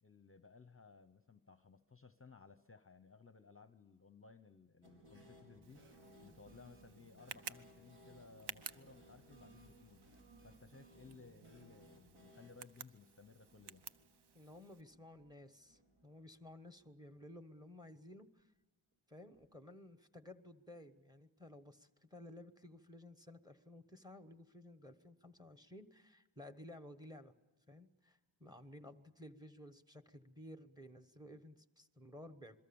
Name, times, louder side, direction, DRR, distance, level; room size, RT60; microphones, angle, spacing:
voice 1, 0.0-5.8 6.2-10.0 10.4-13.9, left 4 dB, 25° left, 12 dB, 0.7 m, -60 dB
sound 1, 4.8-16.6 16.8-16.9 17.2-17.3 19.3-19.5, right 1 dB, 85° right, 5.4 m, -63 dB
Tick, 5.6-14.8, right 7 dB, 55° right, 0.7 m, -55 dB
voice 2, 14.3-18.5 19.1-27.3 27.7-32.6, left 1 dB, 10° right, 11 dB, 1.1 m, -55 dB
27.5 x 22.0 x 7.0 m, 1.1 s
wide cardioid pair, 180°, 49 cm